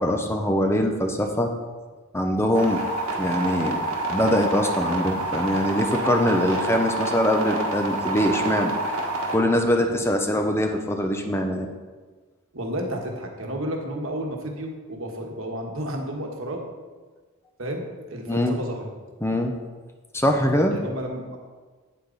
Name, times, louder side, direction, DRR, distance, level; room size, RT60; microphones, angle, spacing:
voice 1, 0.0-1.5 2.1-2.9 3.2-3.8 4.1-8.7 9.3-11.7 18.3-18.6 19.2-19.5 20.1-20.8, equal, 10° left, 4 dB, 0.6 m, -23 dB
sound 1, 2.5-9.4, right 2 dB, 85° right, 1.7 m, -27 dB
voice 2, 12.5-16.6 17.6-18.8 20.2-21.4, right 1 dB, 65° right, 2 dB, 1.5 m, -32 dB
8.8 x 8.5 x 4.0 m, 1.4 s
head